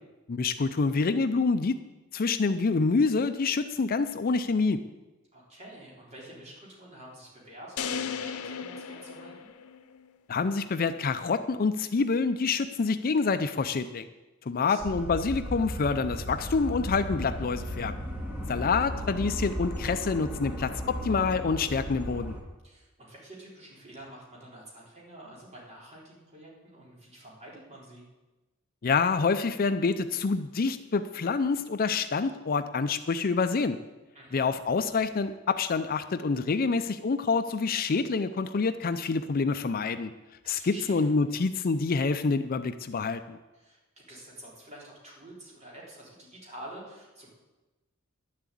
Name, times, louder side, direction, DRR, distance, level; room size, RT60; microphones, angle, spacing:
voice 1, 0.3-1.8 2.1-4.8 10.3-14.1 14.5-18.0 18.5-22.4 28.8-33.8 34.3-40.1 40.5-43.4, left 4 dB, 40° left, 10 dB, 0.5 m, -27 dB
voice 2, 5.3-9.5 14.6-15.1 22.6-28.0 34.1-34.5 40.4-41.1 43.5-47.3, right 1 dB, 30° right, -4 dB, 4.0 m, -48 dB
sound 1, 7.8-10.1, left 6 dB, 90° left, 0.8 m, -36 dB
sound 2, 14.8-22.4, equal, 5° right, 2.1 m, -35 dB
11.0 x 7.5 x 8.5 m, 1.1 s
head